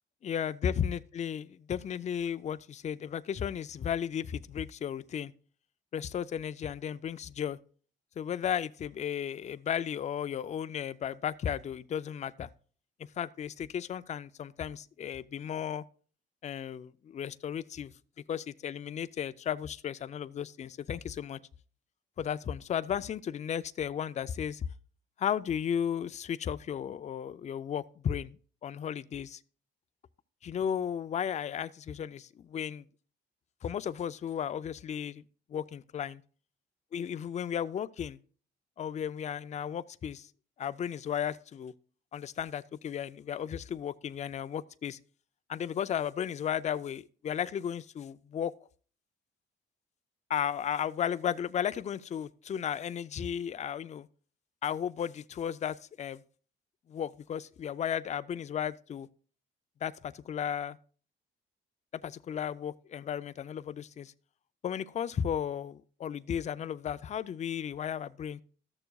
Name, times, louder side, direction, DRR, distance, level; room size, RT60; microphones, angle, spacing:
voice 1, 0.2-5.3 5.9-7.6 8.2-12.5 13.2-15.8 16.4-17.9 18.3-21.4 22.2-24.7 25.2-28.4 28.6-29.4 30.4-32.8 33.6-35.2 35.5-36.2 36.9-38.2 38.8-40.3 40.6-41.7 42.1-45.0 45.5-48.5 50.3-54.1 54.6-56.2 56.9-59.1 59.8-60.8 62.0-64.1 64.6-68.4, left 8 dB, 35° left, 0.4 m, -34 dB
13.5 x 6.8 x 2.3 m
cardioid pair, 90°, 20 cm